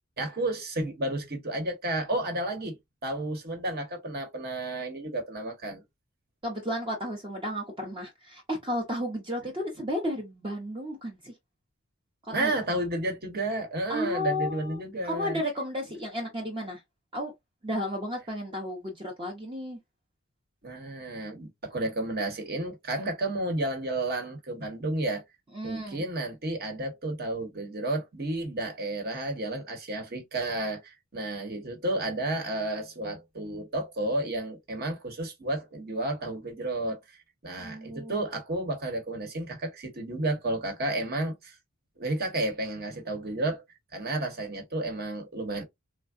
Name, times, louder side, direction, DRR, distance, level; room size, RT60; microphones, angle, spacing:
voice 1, 0.2-5.8 12.3-15.4 20.6-25.2 25.6-37.2 37.4-41.6 42.0-43.6 43.9-45.6, right 1 dB, 50° right, 1.1 m, -32 dB
voice 2, 6.4-11.3 12.2-12.5 13.9-16.8 17.1-17.3 17.6-19.8 25.5-26.0 37.6-38.1, equal, 25° right, 0.7 m, -33 dB
3.5 x 2.1 x 2.4 m
head